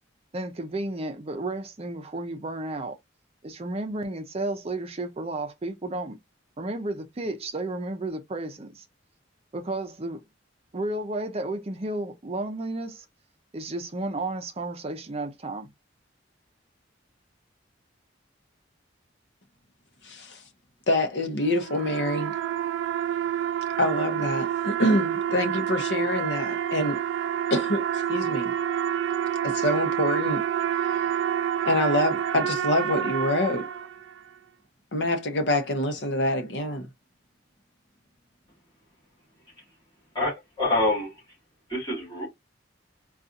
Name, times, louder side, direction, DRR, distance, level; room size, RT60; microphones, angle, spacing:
voice 1, 0.3-2.9 3.4-6.2 6.6-8.9 9.5-10.2 10.7-13.0 13.5-15.7, right 2 dB, 30° right, 0.5 m, -32 dB
voice 2, 20.0-20.4 20.9-22.3 23.8-27.0 27.5-28.5 29.4-30.4 30.8-31.1 31.6-33.7 34.9-36.9, left 1 dB, 60° left, 0.8 m, -26 dB
sound 1, 21.4-34.2, right 9 dB, 80° right, 0.3 m, -28 dB
voice 3, 40.1-41.1 41.7-42.3, left 2 dB, 25° left, 2.4 m, -26 dB
4.0 x 2.4 x 2.5 m
head